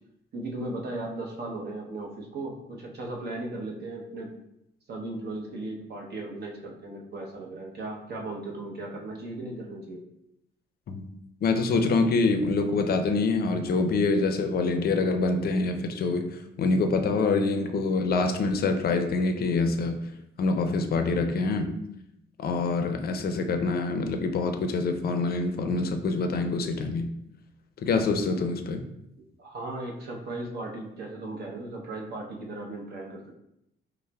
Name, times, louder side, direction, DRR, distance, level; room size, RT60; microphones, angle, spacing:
voice 1, 0.3-4.4 4.9-10.0 29.4-33.4, right 2 dB, 55° right, 0 dB, 0.8 m, -36 dB
voice 2, 11.4-20.0 20.4-21.7 22.4-27.1 27.8-28.8, left 3 dB, 50° left, 6 dB, 0.5 m, -25 dB
5.4 x 2.1 x 2.3 m, 0.81 s
cardioid pair, 90°, 20 cm